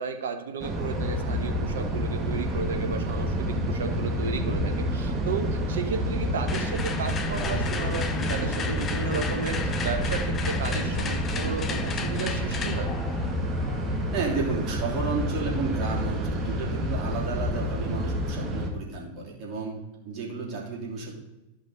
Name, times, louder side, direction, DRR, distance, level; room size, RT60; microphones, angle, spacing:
voice 1, 0.0-12.9, right 5 dB, 70° right, 7 dB, 0.9 m, -34 dB
sound 1, 0.6-18.7, equal, 25° right, 1.5 m, -29 dB
sound 2, 6.5-14.4, left 5 dB, 30° left, 0.8 m, -35 dB
voice 2, 14.1-19.8 20.0-21.2, right 4 dB, 40° right, -3 dB, 3.0 m, -32 dB
12.0 x 5.3 x 4.0 m, 1.0 s
figure-of-eight pair, 90°, 0 cm